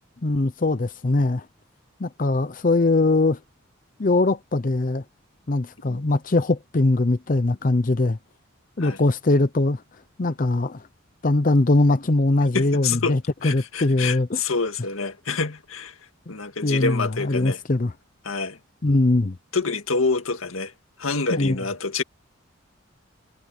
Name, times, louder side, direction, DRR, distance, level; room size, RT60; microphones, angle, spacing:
voice 1, 0.2-1.5 2.0-3.4 4.0-5.0 5.5-8.2 8.8-9.8 10.2-10.9 11.2-14.4 16.3-16.4 16.6-17.9 18.8-19.4 21.3-21.5, left 2 dB, 40° left, 0.6 m, -21 dB
voice 2, 12.5-16.0 16.3-17.6 18.2-18.6 19.5-20.7 21.0-22.0, left 4 dB, 90° left, 2.0 m, -27 dB
head